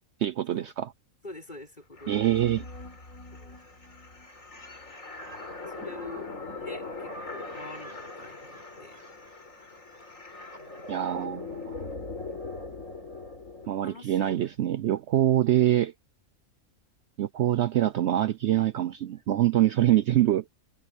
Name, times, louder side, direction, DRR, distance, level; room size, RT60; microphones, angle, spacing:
voice 1, 0.2-0.9 2.1-2.6 10.9-11.9 13.7-15.9 17.2-20.4, right 12 dB, 65° right, 0.8 m, -25 dB
voice 2, 1.2-2.3 3.3-3.6 5.2-6.3 6.6-9.0 13.6-14.5, left 2 dB, 30° left, 6.0 m, -46 dB
sound 1, 1.9-13.7, left 3 dB, 65° left, 5.2 m, -41 dB
omnidirectional pair, 1.5 m